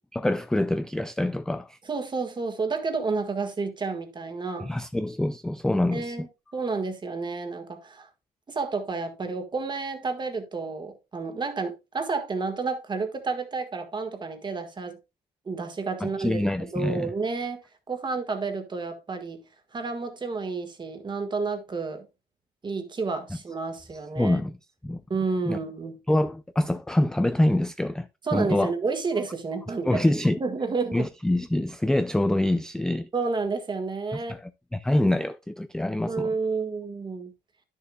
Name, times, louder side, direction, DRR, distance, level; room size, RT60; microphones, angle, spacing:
voice 1, 0.1-1.8 4.6-6.2 16.0-17.1 24.2-24.6 24.8-25.0 25.5-25.6 26.1-28.7 29.9-30.4 30.9-33.1 34.3-34.4 34.7-36.3, left 1 dB, 5° left, 0.3 m, -25 dB
voice 2, 1.9-4.7 5.9-8.1 8.5-15.0 15.4-17.6 17.9-19.4 19.7-22.1 22.6-24.4 25.1-26.0 28.2-30.0 30.4-31.1 33.1-34.4 36.1-37.3, right 4 dB, 25° right, 1.6 m, -30 dB
10.5 x 6.6 x 2.3 m
cardioid pair, 110°, 17 cm